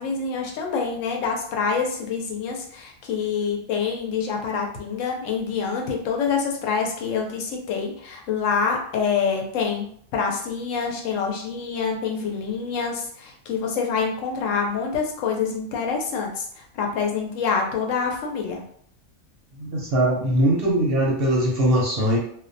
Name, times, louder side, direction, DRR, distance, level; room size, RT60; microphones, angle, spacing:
voice 1, 0.0-9.9 10.1-18.6, left 5 dB, 80° left, 1 dB, 0.9 m, -26 dB
voice 2, 19.6-22.2, right 1 dB, 60° right, -2 dB, 0.7 m, -21 dB
2.3 x 2.1 x 2.5 m, 0.62 s
omnidirectional pair, 1.3 m